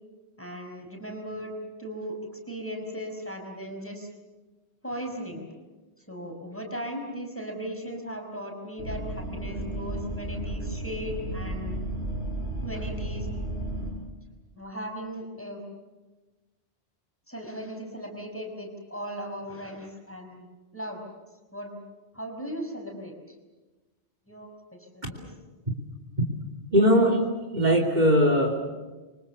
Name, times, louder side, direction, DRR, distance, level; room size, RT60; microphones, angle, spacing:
voice 1, 0.4-2.2 2.5-4.1 4.8-5.5 6.1-11.8 12.6-13.3 14.5-15.6 17.3-20.5 20.7-21.0 21.5-21.8 22.1-23.1 24.3-25.3, equal, 10° left, 2 dB, 5.4 m, -37 dB
sound 1, 8.8-13.9, right 1 dB, 65° right, 6.9 m, -33 dB
voice 2, 26.7-27.2 27.5-28.6, equal, 40° right, 3 dB, 3.2 m, -20 dB
28.0 x 25.0 x 7.1 m, 1.2 s
omnidirectional pair, 1.2 m